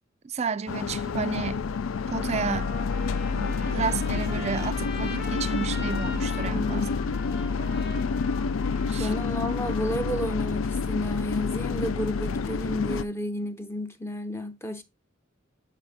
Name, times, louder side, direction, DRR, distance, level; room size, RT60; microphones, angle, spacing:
voice 1, 0.2-1.7 2.1-2.7 3.3-6.9 8.9-9.1, right 5 dB, 35° right, 0.3 m, -31 dB
sound 1, 0.7-13.0, left 5 dB, 85° left, 0.4 m, -28 dB
Trumpet, 2.3-10.3, left 3 dB, 55° left, 2.0 m, -41 dB
voice 2, 6.4-7.1 8.9-14.8, left 1 dB, 10° left, 0.6 m, -31 dB
9.1 x 4.2 x 3.4 m
head